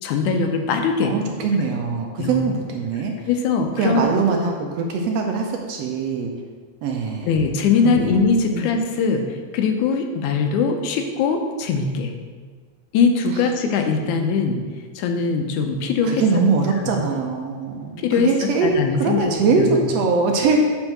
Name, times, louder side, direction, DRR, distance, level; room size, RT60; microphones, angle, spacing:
voice 1, 0.0-1.1 2.2-2.5 3.3-4.0 7.3-9.2 9.5-12.1 12.9-14.6 15.0-16.2 16.8-16.9 18.0-19.7, left 5 dB, 90° left, 5 dB, 2.2 m, -21 dB
voice 2, 1.0-3.1 3.8-6.3 6.8-7.4 7.8-8.2 8.5-8.7 16.0-20.6, right 4 dB, 75° right, 2 dB, 1.7 m, -22 dB
7.9 x 4.4 x 5.9 m, 1.5 s
omnidirectional pair, 3.4 m